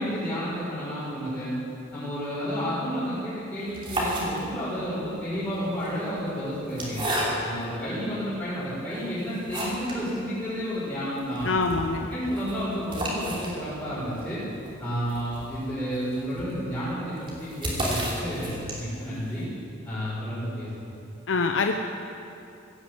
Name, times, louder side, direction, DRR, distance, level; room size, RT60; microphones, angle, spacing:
voice 1, 0.0-1.5 1.9-7.0 7.4-11.5 12.1-14.4 14.8-19.5 19.8-20.9, equal, 15° left, -14 dB, 4.9 m, -31 dB
sound 1, 3.6-4.8 5.7-7.7 8.3-8.4 8.9-10.1 10.4-10.5 10.7-10.8 11.2-19.1, right 1 dB, 25° right, 3.2 m, -33 dB
voice 2, 11.4-12.1 21.3-21.7, left 4 dB, 75° left, 4 dB, 0.7 m, -24 dB
16.5 x 10.5 x 7.9 m, 2.7 s
head